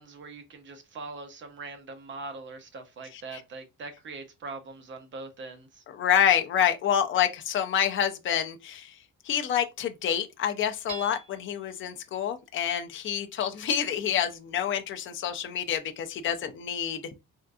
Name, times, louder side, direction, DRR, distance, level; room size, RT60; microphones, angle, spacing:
voice 1, 0.0-5.8, right 3 dB, 35° right, 0.7 m, -42 dB
voice 2, 5.9-8.9 9.2-17.0, left 9 dB, 40° left, 0.4 m, -27 dB
Hammer / Chink clink, 10.9-11.7, right 4 dB, 70° right, 1.6 m, -42 dB
3.6 x 2.5 x 2.3 m
cardioid pair, 160°, 32 cm